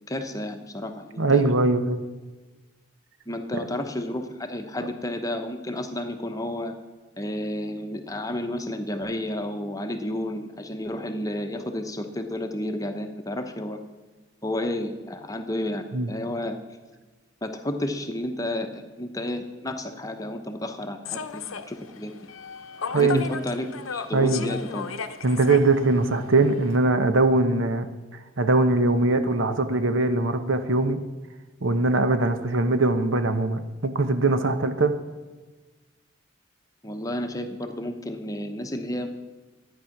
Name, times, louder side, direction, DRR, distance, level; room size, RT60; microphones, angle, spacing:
voice 1, 0.1-1.4 3.3-6.7 7.2-13.8 14.4-16.6 17.4-22.2 23.0-24.9 36.8-39.1, left 1 dB, 15° left, 6 dB, 0.9 m, -31 dB
voice 2, 1.2-2.0 15.9-16.1 22.9-23.2 24.1-24.6 25.2-27.9 28.4-31.0 31.6-35.0, right 2 dB, 70° right, 9 dB, 0.9 m, -21 dB
Human voice / Subway metro underground, 21.0-26.8, left 6 dB, 85° left, 0.8 m, -36 dB
13.0 x 9.6 x 5.9 m, 1.3 s
head